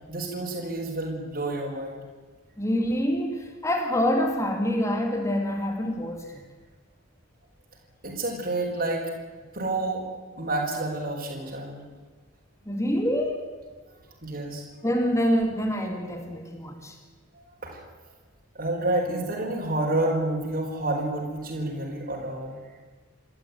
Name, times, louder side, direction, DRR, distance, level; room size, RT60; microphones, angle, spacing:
voice 1, 0.1-2.0 8.0-9.1 9.5-10.0 10.4-11.8 13.9-14.0 14.2-14.6 17.3-17.8 18.5-22.6, right 2 dB, 45° right, -3 dB, 4.5 m, -29 dB
voice 2, 2.6-6.4 12.7-13.5 14.8-17.0, equal, 15° left, 4 dB, 2.2 m, -26 dB
28.0 x 12.5 x 9.4 m, 1.4 s
head